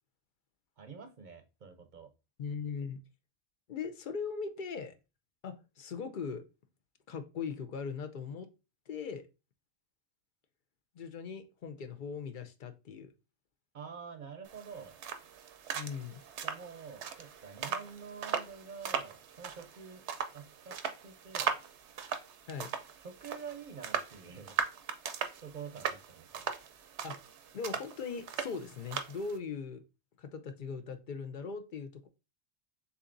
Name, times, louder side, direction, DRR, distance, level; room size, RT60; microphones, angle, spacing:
voice 1, 0.8-2.1 13.7-14.9 16.4-20.0 20.3-20.8 21.0-21.5 23.0-24.6 25.4-26.5, right 6 dB, 50° right, 7 dB, 0.7 m, -47 dB
voice 2, 2.4-3.0 3.7-4.9 5.4-6.4 7.1-8.5 8.9-9.2 10.9-13.1 15.7-16.2 22.5-22.7 27.0-27.2 27.5-29.8 30.2-32.1, left 5 dB, 55° left, 8 dB, 0.7 m, -39 dB
sound 1, 14.5-29.4, right 7 dB, 80° right, 0.9 m, -39 dB
7.0 x 2.7 x 2.5 m, 0.29 s
omnidirectional pair, 1.2 m